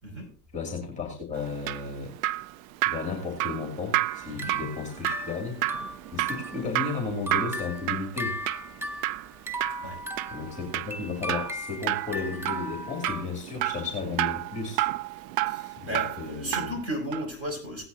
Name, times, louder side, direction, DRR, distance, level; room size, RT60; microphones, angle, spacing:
voice 1, 0.5-2.1 2.9-5.6 6.1-8.4 10.3-14.8 15.8-16.8, left 4 dB, 15° left, 2 dB, 2.7 m, -34 dB
Drip, 1.4-16.8 17.1-17.3, right 16 dB, 55° right, 0.6 m, -31 dB
sound 1, 4.1-6.7 7.1-13.2, left 1 dB, 5° right, 0.6 m, -37 dB
voice 2, 15.5-17.9, equal, 30° right, 3 dB, 5.9 m, -34 dB
17.0 x 9.9 x 2.8 m, 0.40 s
hypercardioid pair, 110°, 48 cm